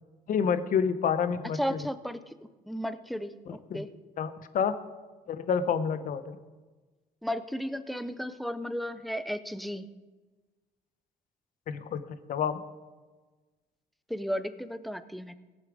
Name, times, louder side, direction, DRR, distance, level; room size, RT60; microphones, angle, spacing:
voice 1, 0.3-1.8 3.5-3.8 4.2-4.7 5.3-6.4 11.7-12.0 12.3-12.6, left 7 dB, 55° left, 12 dB, 0.9 m, -28 dB
voice 2, 1.6-2.2 2.7-3.9 7.2-9.8 14.1-15.3, equal, ahead, 12 dB, 0.6 m, -34 dB
17.0 x 7.5 x 4.9 m, 1.3 s
cardioid pair, 110°, 17 cm